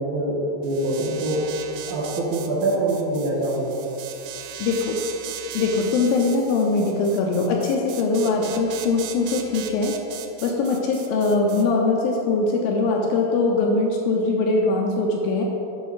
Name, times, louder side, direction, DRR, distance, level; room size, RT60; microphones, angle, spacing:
voice 1, 0.0-1.4 1.9-3.7, right 2 dB, 70° right, -6 dB, 2.0 m, -24 dB
sound 1, 0.6-11.6, right 10 dB, 85° right, 2.1 m, -38 dB
voice 2, 4.6-5.0 5.5-10.0 10.4-15.4, left 3 dB, 80° left, 0 dB, 2.1 m, -22 dB
8.7 x 5.5 x 4.7 m, 3.0 s
omnidirectional pair, 4.8 m